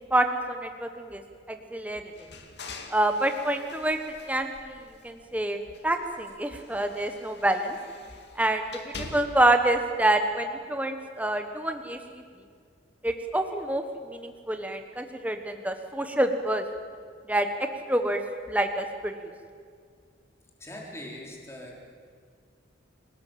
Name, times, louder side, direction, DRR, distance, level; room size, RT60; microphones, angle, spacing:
voice 1, 0.1-1.2 1.5-2.0 2.9-4.0 4.3-4.8 5.0-7.8 8.4-12.2 13.0-16.6 17.3-18.2 18.5-19.3, right 1 dB, 10° right, 6 dB, 1.3 m, -27 dB
sound 1, 2.1-5.3 5.7-9.6, left 3 dB, 60° left, 2.6 m, -45 dB
voice 2, 20.6-21.8, left 1 dB, 15° left, -1 dB, 4.6 m, -41 dB
29.0 x 18.0 x 7.7 m, 2.1 s
head